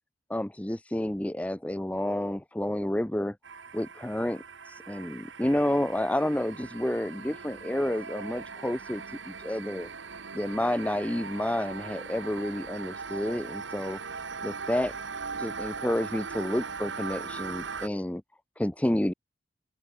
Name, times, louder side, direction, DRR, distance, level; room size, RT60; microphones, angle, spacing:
voice 1, 0.3-3.4 3.7-4.4 4.9-9.9 10.3-14.0 14.4-14.9 15.4-18.2 18.6-19.1, left 1 dB, 5° left, 0.5 m, -30 dB
sound 1, 3.4-17.9, right 5 dB, 90° right, 1.5 m, -40 dB
open air
head